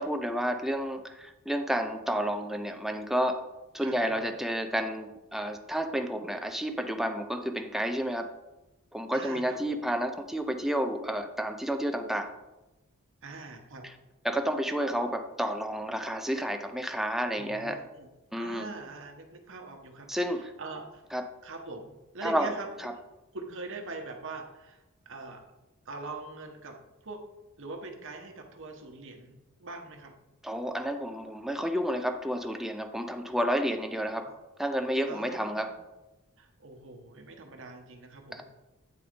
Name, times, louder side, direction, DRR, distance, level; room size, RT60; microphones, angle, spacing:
voice 1, 0.0-3.4 3.7-8.3 8.9-12.3 14.2-17.8 18.3-18.7 20.1-20.5 21.1-21.2 22.2-22.5 22.8-22.9 30.4-34.3 34.6-35.8 38.3-38.4, equal, ahead, 6 dB, 0.5 m, -30 dB
voice 2, 3.8-4.3 9.1-9.8 13.2-13.8 17.4-18.1 18.3-20.1 20.3-21.0 21.4-22.7 23.3-25.4 25.8-26.8 27.0-27.2 27.6-29.3 29.6-30.1 34.2-34.3 35.0-35.7 36.4-38.4, right 3 dB, 60° right, 4 dB, 1.1 m, -42 dB
8.6 x 4.1 x 5.1 m, 1.0 s
head